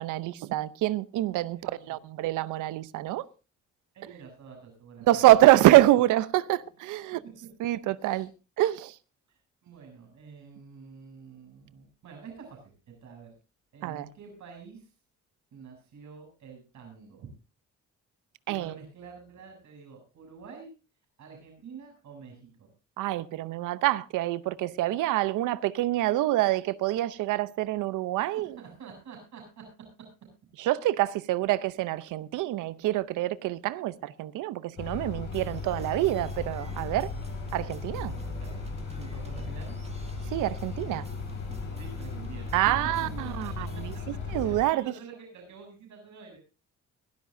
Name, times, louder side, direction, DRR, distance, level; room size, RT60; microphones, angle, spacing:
voice 1, 0.0-3.3 5.1-7.2 7.6-8.3 8.6-8.9 13.8-14.1 18.5-18.7 23.0-28.6 30.6-37.1 37.5-38.1 40.3-41.1 42.5-43.9 44.3-44.8, right 15 dB, 90° right, 0.7 m, -26 dB
voice 2, 1.5-2.0 3.9-5.2 8.0-8.3 9.3-13.3 13.7-14.9 15.5-17.3 18.5-20.7 21.2-22.7 28.3-29.7 38.0-38.6 39.0-39.8 41.8-42.7 43.0-43.8 44.4-46.4, right 5 dB, 70° right, 7.5 m, -48 dB
sound 1, 34.8-44.6, left 4 dB, 70° left, 5.6 m, -37 dB
sound 2, 35.3-44.0, right 2 dB, 20° right, 2.0 m, -45 dB
22.5 x 12.5 x 2.6 m
cardioid pair, 90°, 30 cm